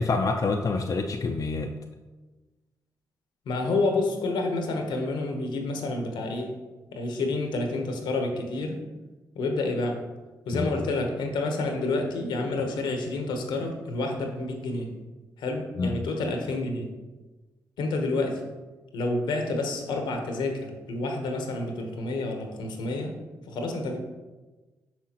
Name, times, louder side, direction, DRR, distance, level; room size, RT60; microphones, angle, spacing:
voice 1, 0.0-1.7 10.5-10.7 15.8-16.0, left 3 dB, 45° left, 4 dB, 0.5 m, -27 dB
voice 2, 3.5-6.6 6.9-8.8 9.3-10.0 10.5-14.9 15.4-16.9 17.8-18.5 18.9-23.2 23.5-24.0, left 2 dB, 80° left, 4 dB, 0.9 m, -29 dB
6.1 x 5.8 x 2.9 m, 1.2 s
hypercardioid pair, 40°, 8 cm